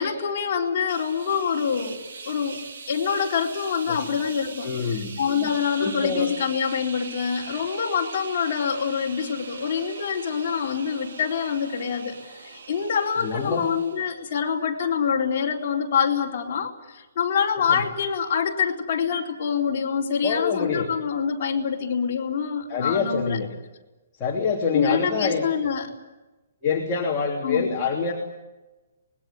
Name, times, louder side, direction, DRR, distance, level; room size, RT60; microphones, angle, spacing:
voice 1, 0.0-2.0 2.2-2.6 2.9-12.2 12.5-23.4 24.7-25.9 27.4-27.8, left 6 dB, 30° left, -3 dB, 4.2 m, -25 dB
sound 1, 0.9-14.2, right 4 dB, 65° right, 2.8 m, -41 dB
voice 2, 4.6-5.1 5.4-5.5 5.8-6.3 13.2-13.7 17.7-17.8 20.2-20.9 22.7-23.5 24.2-25.4 26.6-28.1, left 5 dB, 15° left, -4 dB, 3.0 m, -26 dB
25.0 x 21.0 x 8.6 m, 1.1 s
hypercardioid pair, 180°, 0 cm